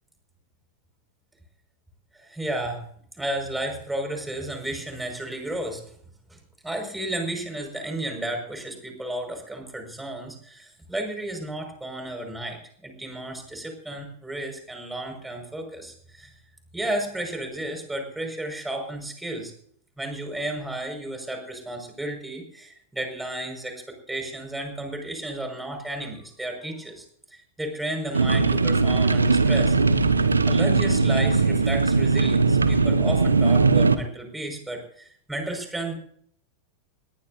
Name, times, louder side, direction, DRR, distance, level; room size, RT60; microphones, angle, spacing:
voice 1, 2.1-2.9 3.1-5.8 6.3-6.4 6.6-16.3 16.7-19.5 20.0-27.0 27.3-29.8 30.5-35.9, right 1 dB, 5° right, 4 dB, 5.6 m, -33 dB
sound 1, 28.1-34.0, right 4 dB, 80° right, 1.1 m, -20 dB
21.5 x 18.5 x 2.7 m, 0.62 s
figure-of-eight pair, 90°, 0 cm